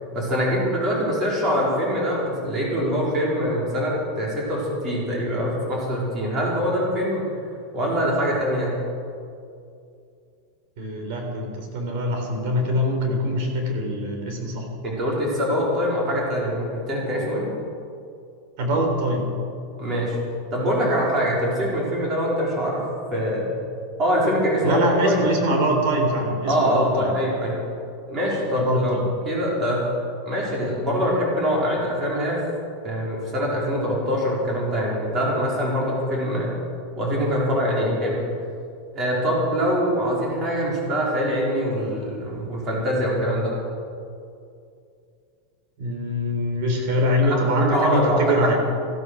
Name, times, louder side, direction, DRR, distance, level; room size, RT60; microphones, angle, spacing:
voice 1, 0.1-7.2 7.7-8.7 14.8-17.5 19.8-20.2 20.5-22.8 23.1-23.5 24.0-25.3 26.5-27.6 28.1-29.0 29.2-29.9 30.2-32.4 32.8-36.5 36.9-38.2 38.9-43.6 47.2-47.4 47.7-48.2, equal, 25° right, -4 dB, 4.7 m, -24 dB
voice 2, 10.8-14.7 18.6-19.3 24.6-27.1 28.5-29.1 45.8-48.5, equal, 55° right, 3 dB, 3.8 m, -23 dB
14.5 x 12.5 x 6.5 m, 2.5 s
supercardioid pair, 160°, 0 cm